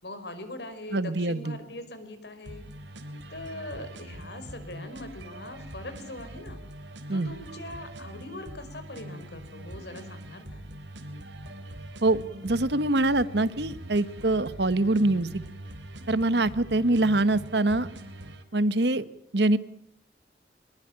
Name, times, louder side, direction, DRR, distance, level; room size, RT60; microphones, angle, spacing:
voice 1, 0.0-2.7 3.3-6.6 7.1-10.7, left 1 dB, 65° left, 10 dB, 5.2 m, -41 dB
voice 2, 0.9-1.6 7.1-7.3 12.0-15.4 16.1-17.9 18.5-19.0 19.3-19.6, right 2 dB, 70° right, 15 dB, 1.3 m, -24 dB
sound 1, 2.4-18.4, right 1 dB, 85° right, 3.5 m, -43 dB
23.5 x 21.5 x 8.8 m, 0.67 s
head